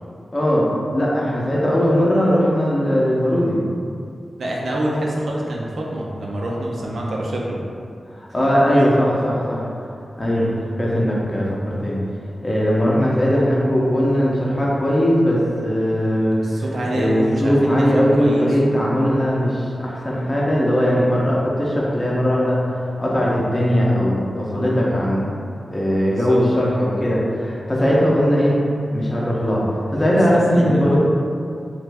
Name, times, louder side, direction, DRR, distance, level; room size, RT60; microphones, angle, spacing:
voice 1, 0.3-3.6 8.1-9.6 10.2-10.5 10.8-12.0 12.4-16.4 16.9-22.7 23.0-25.3 25.7-28.6 28.9-29.6 29.9-31.0, equal, 25° left, -6 dB, 0.6 m, -19 dB
voice 2, 4.4-7.6 8.7-8.9 10.3-10.5 16.4-18.8 26.1-26.4 30.5-30.9, right 1 dB, 80° right, -2 dB, 0.5 m, -26 dB
3.1 x 2.4 x 3.3 m, 2.4 s
wide cardioid pair, 110°, 0 cm